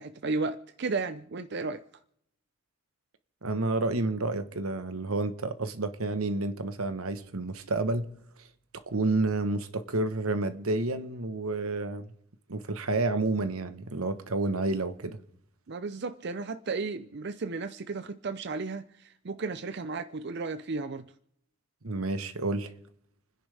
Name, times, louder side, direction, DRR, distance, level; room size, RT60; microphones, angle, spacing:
voice 1, 0.0-1.8 15.7-21.1, right 3 dB, 50° right, 0.5 m, -34 dB
voice 2, 3.4-8.1 8.9-12.1 12.5-15.2 21.8-22.7, right 2 dB, 90° right, 1.2 m, -30 dB
29.5 x 10.5 x 3.4 m
head